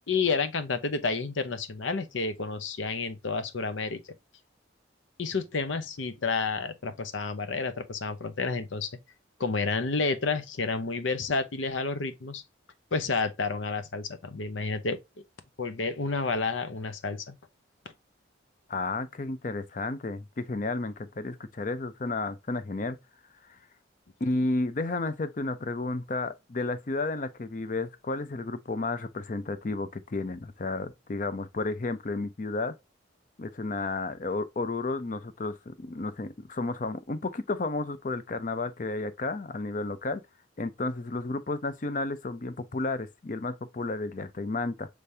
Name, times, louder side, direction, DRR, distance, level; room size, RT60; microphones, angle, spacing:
voice 1, 0.1-4.1 5.2-9.0 9.4-12.4 12.9-15.0 15.6-17.4, left 4 dB, 80° left, 0.7 m, -30 dB
voice 2, 18.7-23.0 24.2-32.7 33.4-40.2 40.6-44.9, left 3 dB, 40° left, 0.5 m, -32 dB
5.2 x 3.3 x 2.6 m
head